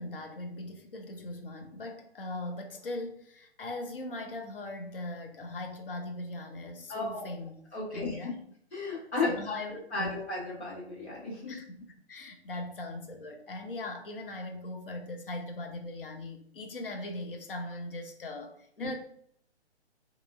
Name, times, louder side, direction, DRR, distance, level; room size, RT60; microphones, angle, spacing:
voice 1, 0.0-7.6 7.9-8.4 9.3-10.2 11.5-11.8 12.1-19.0, left 2 dB, 55° left, 4 dB, 0.5 m, -40 dB
voice 2, 6.9-7.3 7.7-8.3 8.7-9.6 9.9-11.5 18.8-18.9, left 3 dB, 75° left, -7 dB, 1.5 m, -34 dB
2.8 x 2.4 x 2.3 m, 0.66 s
figure-of-eight pair, 130°, 34 cm